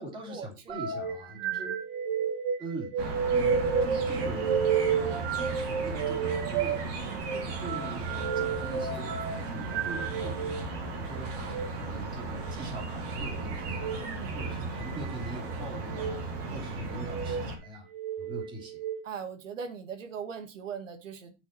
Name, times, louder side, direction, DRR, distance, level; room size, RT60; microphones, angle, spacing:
voice 1, 0.0-1.7 2.6-17.9 18.2-18.8, right 1 dB, 15° right, 3.0 m, -43 dB
sound 1, 0.7-10.6 11.4-11.7 13.7-14.0 14.8-15.3 15.9-16.2 16.9-17.4 17.9-19.0, right 6 dB, 50° right, 1.5 m, -31 dB
sound 2, 3.0-17.6, right 3 dB, 30° right, 2.3 m, -36 dB
voice 2, 14.0-14.4 16.4-16.6 19.0-21.3, right 6 dB, 85° right, 2.0 m, -40 dB
8.8 x 6.2 x 4.4 m
hypercardioid pair, 170°, 37 cm